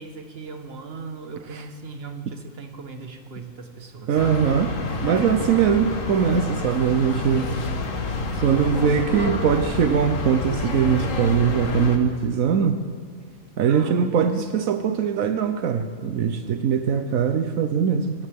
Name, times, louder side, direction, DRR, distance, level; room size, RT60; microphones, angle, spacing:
voice 1, 0.0-4.4 8.3-8.9 13.7-14.2, right 4 dB, 50° right, 5 dB, 1.6 m, -37 dB
voice 2, 4.1-4.7 5.0-7.5 8.4-12.8 13.6-18.1, right 7 dB, 80° right, 8 dB, 1.2 m, -21 dB
sound 1, 4.2-12.0, left 3 dB, 70° left, 1.7 m, -28 dB
27.5 x 14.5 x 3.6 m, 2.1 s
omnidirectional pair, 1.4 m